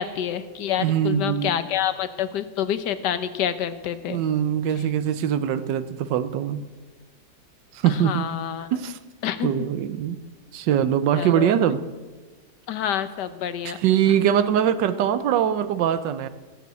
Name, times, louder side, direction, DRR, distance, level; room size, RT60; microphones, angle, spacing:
voice 1, 0.0-4.2 7.9-8.7 9.2-9.5 11.1-11.5 12.7-13.8, left 9 dB, 70° left, 12 dB, 1.4 m, -27 dB
voice 2, 0.8-1.6 4.1-6.6 7.7-8.3 8.7-9.0 9.4-10.2 10.5-11.8 13.6-16.3, right 9 dB, 80° right, 13 dB, 1.4 m, -22 dB
14.5 x 8.3 x 8.2 m, 1.3 s
omnidirectional pair, 1.9 m